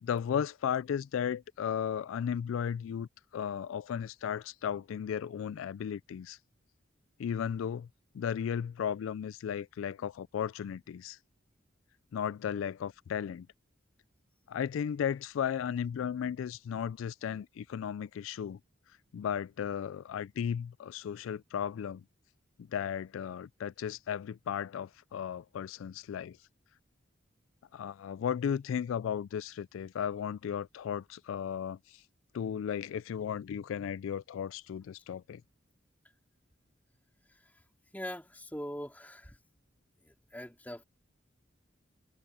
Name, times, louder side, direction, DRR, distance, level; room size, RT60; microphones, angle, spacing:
voice 1, 0.0-6.4 7.2-7.9 8.1-11.2 12.1-13.5 14.5-18.6 19.1-22.0 22.7-26.4 27.7-32.0 32.3-35.4, left 8 dB, 85° left, 0.3 m, -35 dB
voice 2, 37.9-39.4 40.0-40.8, equal, 10° left, 3.3 m, -42 dB
head